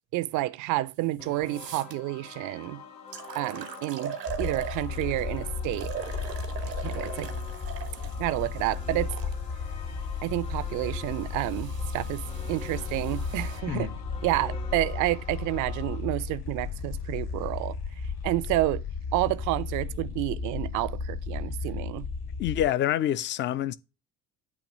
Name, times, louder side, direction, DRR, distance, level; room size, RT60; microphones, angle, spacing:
voice 1, 0.1-2.8 3.4-5.9 6.8-7.3 8.2-9.1 10.2-12.2 12.5-13.9 14.2-17.8 18.2-18.8 19.1-22.1, right 18 dB, 45° right, 0.4 m, -29 dB
sound 1, 1.0-1.1 1.5-1.9 2.6-2.7 3.1-5.2 5.7-9.3 10.2-13.6, right 7 dB, 90° right, 0.7 m, -41 dB
sound 2, 1.2-16.0, left 5 dB, 80° left, 3.1 m, -46 dB
sound 3, 4.3-22.7, left 5 dB, 50° left, 1.9 m, -34 dB
voice 2, 22.4-23.7, left 12 dB, 25° left, 0.3 m, -26 dB
8.5 x 2.9 x 6.1 m
figure-of-eight pair, 50°, 48 cm